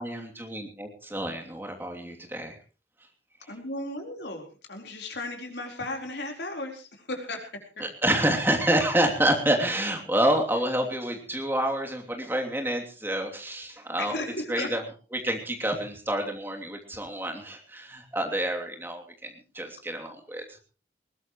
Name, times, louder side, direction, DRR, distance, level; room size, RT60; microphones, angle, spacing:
voice 1, 0.0-2.6 7.8-14.1 14.5-14.8 15.1-20.4, right 1 dB, 10° right, 2 dB, 2.9 m, -28 dB
voice 2, 3.5-7.8 14.0-14.7, left 2 dB, 80° left, 3 dB, 4.2 m, -35 dB
20.5 x 18.5 x 3.1 m, 0.35 s
head